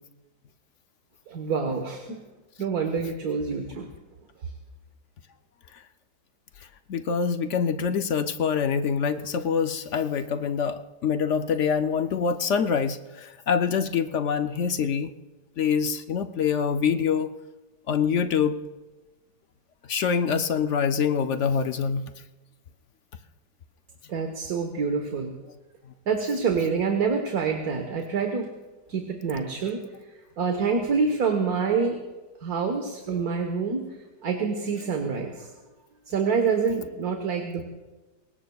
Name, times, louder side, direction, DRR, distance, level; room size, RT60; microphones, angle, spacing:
voice 1, 1.3-2.2 2.6-3.9 24.1-25.4 26.1-28.5 28.9-29.8 30.4-32.0 32.4-33.8 34.2-35.5 36.1-37.6, right 5 dB, 60° right, 4 dB, 1.7 m, -26 dB
voice 2, 6.9-15.1 15.6-17.3 17.9-18.6 19.9-22.0, left 6 dB, 65° left, 9 dB, 0.7 m, -25 dB
23.5 x 19.0 x 2.3 m, 1.1 s
omnidirectional pair, 1.8 m